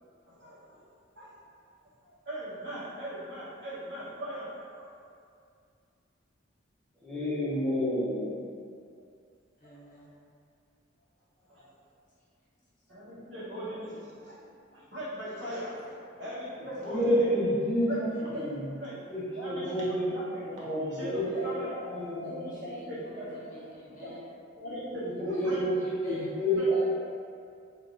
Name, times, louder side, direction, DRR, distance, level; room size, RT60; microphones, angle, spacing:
voice 1, 0.3-0.9 1.2-1.3 2.0-4.6 11.5-11.6 12.9-14.3 14.7-17.3 17.8-18.0 18.3-18.4 18.8-18.9 19.4-19.7 20.1-20.6 20.9-23.4 24.0-24.1 24.6-25.1 25.4-25.6 26.0-26.1 26.6-26.7, equal, 65° right, -9 dB, 0.9 m, -39 dB
voice 2, 7.0-8.4 16.8-18.7 19.1-20.2 20.5-22.6 24.9-27.0, equal, 5° left, -10 dB, 0.6 m, -29 dB
voice 3, 9.6-10.1 18.1-18.5 21.0-21.5 22.2-24.2 25.1-26.4, equal, 45° left, -8 dB, 0.7 m, -51 dB
3.4 x 2.2 x 2.4 m, 2.3 s
head